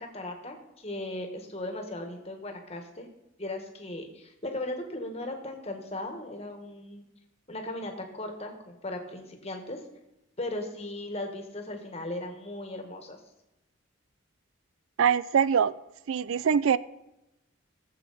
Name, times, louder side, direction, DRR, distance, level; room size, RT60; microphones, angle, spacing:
voice 1, 0.0-3.1 3.4-7.0 7.5-9.8 10.4-13.2, left 1 dB, 30° left, 1.6 m, -37 dB
voice 2, 15.0-15.8 16.1-16.8, right 7 dB, 80° right, 0.4 m, -23 dB
17.5 x 7.7 x 4.2 m
head